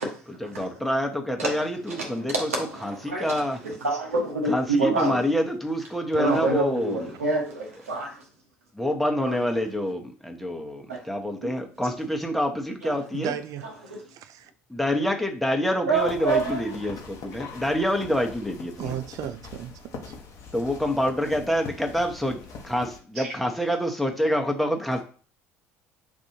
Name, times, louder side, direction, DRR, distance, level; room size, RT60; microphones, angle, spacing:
voice 1, 0.0-0.9 1.4-5.2 5.8-5.9 6.1-8.7 9.2-9.4 10.9-11.1 11.4-11.5 11.8-11.9 12.8-13.1 13.3-14.2 15.9-16.9 23.1-23.3, right 3 dB, 85° right, 1.1 m, -28 dB
voice 2, 0.5-2.3 3.0-3.6 4.5-6.9 8.7-13.4 14.7-19.0 20.5-25.0, equal, ahead, 0.9 m, -27 dB
voice 3, 13.1-13.6 18.8-20.1, right 10 dB, 50° right, 0.3 m, -34 dB
sound 1, 15.9-23.0, left 4 dB, 50° left, 1.0 m, -42 dB
6.0 x 2.6 x 2.8 m
hypercardioid pair, 65°, 7 cm